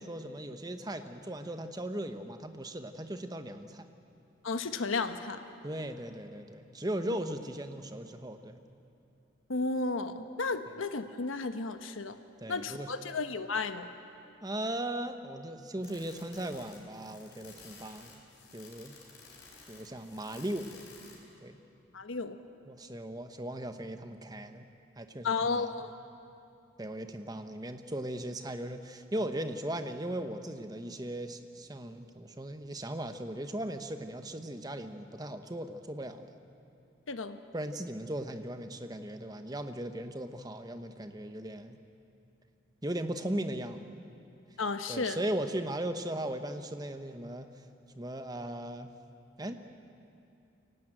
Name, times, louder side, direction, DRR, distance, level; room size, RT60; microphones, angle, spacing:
voice 1, 0.0-3.9 5.6-8.6 12.4-12.9 14.4-18.2 18.5-18.9 19.7-20.7 21.4-21.6 22.7-24.6 25.0-25.7 26.8-36.3 37.5-41.8 42.8-43.9 44.9-47.5 47.9-48.9 49.4-49.5, right 1 dB, 20° right, 8 dB, 1.0 m, -38 dB
voice 2, 4.4-5.4 9.5-12.2 12.5-13.9 21.9-22.4 25.2-26.0 37.1-37.4 44.6-45.2, left 4 dB, 90° left, 9 dB, 1.1 m, -33 dB
sound 1, 15.8-21.3, left 4 dB, 55° left, 4.9 m, -53 dB
23.5 x 17.5 x 9.0 m, 2.7 s
head